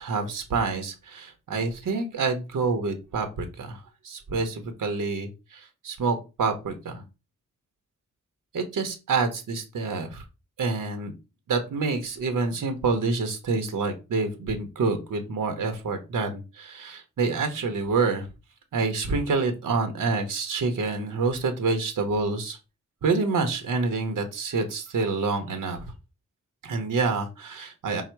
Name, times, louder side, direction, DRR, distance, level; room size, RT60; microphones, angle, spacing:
voice 1, 0.0-7.0 8.5-10.2 10.6-11.1 11.5-18.3 18.7-22.6 23.0-25.9 26.6-28.0, right 4 dB, 85° right, 6 dB, 0.9 m, -27 dB
5.6 x 2.0 x 4.4 m, 0.28 s
wide cardioid pair, 160°, 31 cm